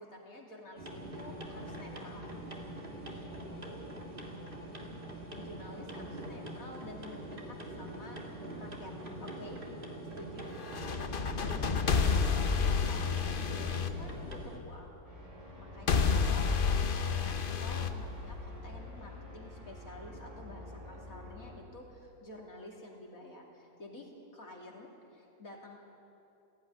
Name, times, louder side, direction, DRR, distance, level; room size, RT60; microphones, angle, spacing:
voice 1, 0.0-2.3 5.4-8.9 9.2-9.6 10.1-10.5 12.9-15.0 15.6-16.5 17.0-25.8, left 1 dB, 60° left, -1 dB, 3.2 m, -50 dB
sound 1, 0.8-14.6, right 1 dB, 35° right, 2.4 m, -44 dB
voice 2, 3.0-3.9 10.4-10.6 11.3-11.8, equal, 70° right, -7 dB, 3.8 m, -51 dB
sound 2, 10.6-14.7 15.9-18.7, left 5 dB, 45° left, 0.9 m, -30 dB
sound 3, 15.0-21.5, left 1 dB, 10° left, 4.9 m, -48 dB
17.5 x 15.5 x 9.7 m, 2.7 s
omnidirectional pair, 1.7 m